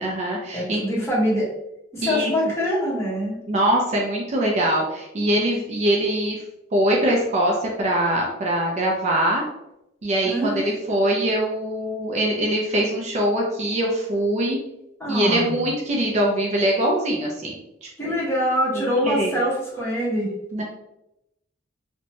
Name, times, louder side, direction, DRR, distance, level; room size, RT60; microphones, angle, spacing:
voice 1, 0.0-0.8 2.0-2.3 3.5-6.4 6.7-9.4 10.0-14.6 15.1-17.5 18.0-18.2 18.7-19.3 20.5-20.6, right 1 dB, 35° right, -1 dB, 0.4 m, -23 dB
voice 2, 0.5-1.5 1.9-3.4 10.2-10.6 15.0-15.6 18.0-20.3, equal, 15° left, -8 dB, 1.1 m, -24 dB
2.9 x 2.2 x 2.6 m, 0.86 s
head